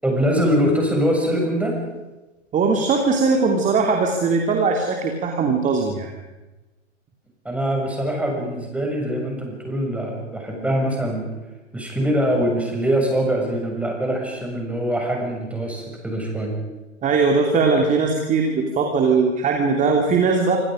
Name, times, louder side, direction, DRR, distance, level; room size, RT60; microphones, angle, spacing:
voice 1, 0.0-1.7 7.5-11.3 11.7-16.6, equal, 5° right, 0 dB, 6.9 m, -23 dB
voice 2, 2.5-6.1 17.0-20.6, right 4 dB, 20° right, 3 dB, 2.8 m, -20 dB
27.5 x 26.0 x 5.2 m, 1.1 s
figure-of-eight pair, 105°, 36 cm